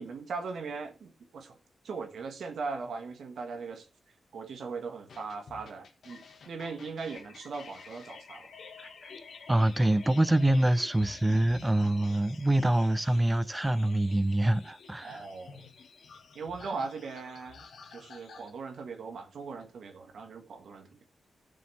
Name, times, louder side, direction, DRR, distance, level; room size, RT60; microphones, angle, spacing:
voice 1, 0.0-1.6 1.8-3.9 4.3-8.5 15.0-15.7 16.3-17.6 17.9-21.0, right 4 dB, 85° right, 1.6 m, -39 dB
sound 1, 5.1-18.5, left 5 dB, 75° left, 1.7 m, -49 dB
voice 2, 9.5-15.2, right 1 dB, 15° right, 0.5 m, -25 dB
15.5 x 6.3 x 3.3 m
wide cardioid pair, 115°, 0 cm